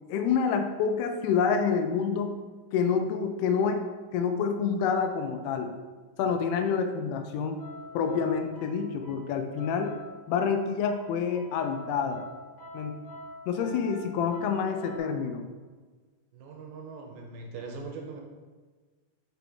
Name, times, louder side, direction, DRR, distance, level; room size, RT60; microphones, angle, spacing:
voice 1, 0.1-2.4 2.7-3.8 4.1-5.7 6.2-7.6 7.9-9.9 10.3-12.2 12.7-12.9 13.5-15.4, left 6 dB, 85° left, 6 dB, 2.6 m, -27 dB
sound 1, 7.6-15.0, equal, 65° left, 1.6 m, -46 dB
voice 2, 16.3-18.2, right 4 dB, 75° right, 1 dB, 2.4 m, -41 dB
6.6 x 5.0 x 3.4 m, 1.4 s
omnidirectional pair, 4.7 m